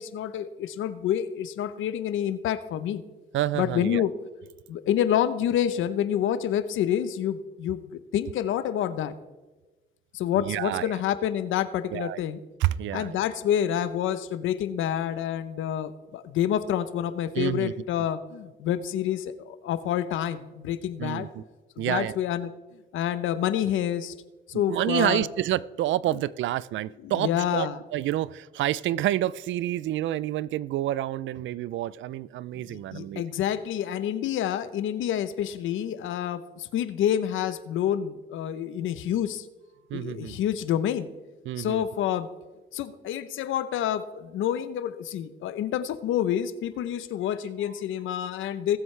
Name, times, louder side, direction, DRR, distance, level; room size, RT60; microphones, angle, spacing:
voice 1, 0.0-3.0 3.5-4.1 4.7-9.1 10.1-12.4 12.9-21.3 21.8-22.5 22.9-24.1 24.5-25.3 27.0-27.8 32.5-39.5 39.9-41.1 41.6-42.3 42.7-48.8, left 10 dB, 80° left, 14 dB, 0.8 m, -28 dB
voice 2, 3.3-4.1 10.4-11.0 11.9-12.2 12.6-13.2 17.3-17.7 21.0-21.4 21.8-22.1 24.5-33.2 39.9-40.4 41.5-41.8 47.6-47.7, right 13 dB, 75° right, 20 dB, 0.4 m, -28 dB
20.0 x 7.9 x 3.3 m, 1.2 s
cardioid pair, 90°, 20 cm